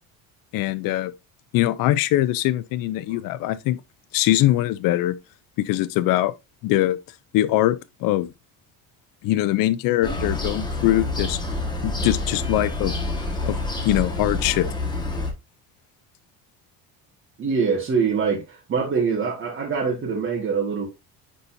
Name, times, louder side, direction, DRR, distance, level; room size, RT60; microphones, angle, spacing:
voice 1, 0.5-1.1 1.5-3.8 4.1-5.2 5.6-6.3 6.6-7.0 7.3-8.3 9.2-11.4 11.8-12.9 13.4-14.7, left 15 dB, 65° left, 0.6 m, -22 dB
sound 1, 10.0-15.3, left 2 dB, 10° left, 1.4 m, -27 dB
voice 2, 17.4-20.9, right 5 dB, 35° right, 1.6 m, -24 dB
10.0 x 4.1 x 2.6 m
cardioid pair, 145°, 37 cm